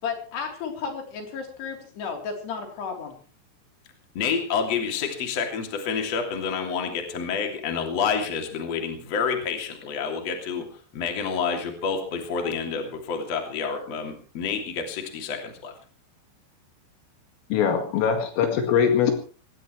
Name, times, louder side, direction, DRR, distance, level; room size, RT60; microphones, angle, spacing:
voice 1, 0.0-3.2, left 6 dB, 55° left, 2 dB, 5.6 m, -33 dB
voice 2, 4.1-10.7 10.9-15.7, left 6 dB, 35° left, 3 dB, 3.3 m, -28 dB
voice 3, 17.5-19.1, left 7 dB, 75° left, 4 dB, 4.6 m, -22 dB
23.0 x 18.5 x 3.3 m, 0.38 s
omnidirectional pair, 5.9 m